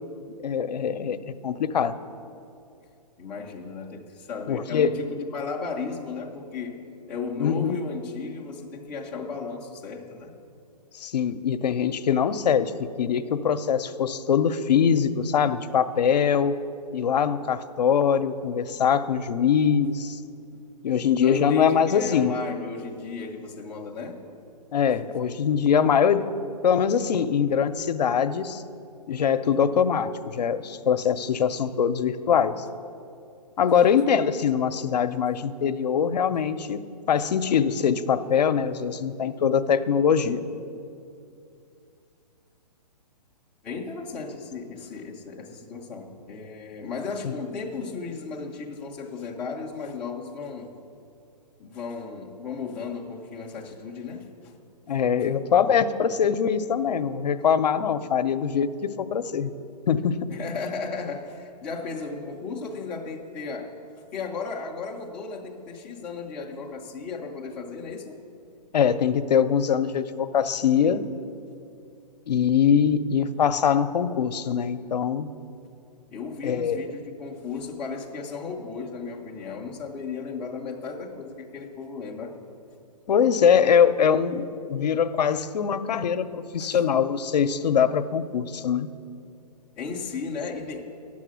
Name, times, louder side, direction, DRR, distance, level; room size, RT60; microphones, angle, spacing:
voice 1, 0.4-1.9 4.5-5.0 7.4-7.8 11.0-16.5 16.9-20.2 20.8-22.3 24.7-26.3 26.6-28.6 29.1-32.5 33.6-36.8 37.1-40.4 47.2-47.3 54.9-59.5 59.9-60.2 68.7-71.0 72.3-75.3 76.4-76.9 83.1-88.9, left 7 dB, 75° left, 11 dB, 0.6 m, -23 dB
voice 2, 3.2-6.8 7.1-10.3 21.2-24.3 43.6-50.7 51.6-54.5 60.3-63.7 64.1-68.2 76.1-82.4 86.6-86.8 89.8-90.8, left 4 dB, 5° left, -4 dB, 0.3 m, -35 dB
9.9 x 7.3 x 6.1 m, 2.5 s
hypercardioid pair, 160°, 21 cm